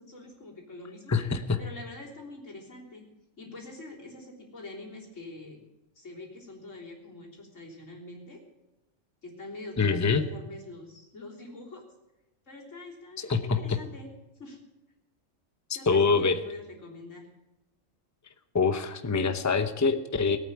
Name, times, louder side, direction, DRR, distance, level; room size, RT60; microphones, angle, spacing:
voice 1, 0.0-1.2 1.6-3.0 3.4-5.6 6.0-8.4 9.2-11.8 12.5-14.1 14.4-14.6 15.7-17.2, left 2 dB, 70° left, -3 dB, 3.9 m, -44 dB
voice 2, 1.1-1.6 9.8-10.2 13.2-13.8 15.9-16.4 18.5-20.4, left 4 dB, 15° left, 9 dB, 0.8 m, -25 dB
18.0 x 9.0 x 8.6 m, 0.97 s
omnidirectional pair, 1.3 m